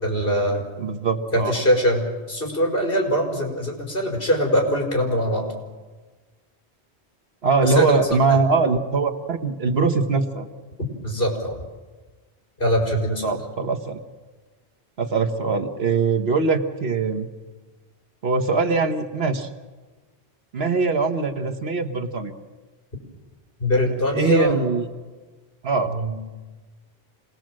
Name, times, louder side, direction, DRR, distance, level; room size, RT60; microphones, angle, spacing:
voice 1, 0.0-0.6 1.3-5.5 7.6-8.0 8.3-8.5 11.0-11.6 12.6-13.3 23.6-24.5 25.9-26.2, equal, 55° left, 1 dB, 5.0 m, -22 dB
voice 2, 0.8-1.5 7.4-10.5 13.2-14.0 15.0-17.3 18.2-19.5 20.5-22.3 24.1-24.9 25.6-25.9, right 4 dB, 70° right, 6 dB, 1.6 m, -22 dB
27.0 x 19.5 x 7.6 m, 1.3 s
omnidirectional pair, 1.1 m